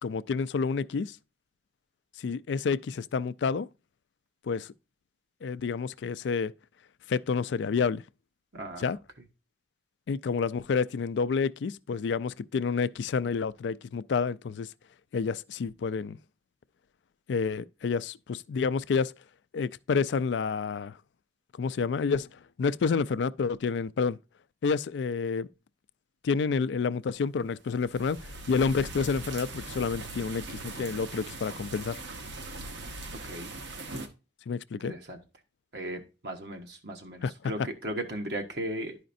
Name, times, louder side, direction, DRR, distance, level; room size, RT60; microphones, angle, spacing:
voice 1, 0.0-1.2 2.2-3.7 4.4-4.7 5.4-6.5 7.1-8.0 8.8-9.0 10.1-14.7 15.1-16.2 17.3-19.1 19.5-21.0 21.6-22.3 22.6-24.2 24.6-25.5 26.2-32.0 34.5-34.9 37.2-37.5, left 5 dB, 80° left, 0.4 m, -29 dB
voice 2, 8.5-8.9 33.2-33.5 34.8-35.2 35.7-39.0, right 1 dB, 65° right, 1.1 m, -36 dB
sound 1, 27.5-34.1, right 2 dB, 90° right, 1.2 m, -40 dB
11.0 x 5.0 x 2.6 m
head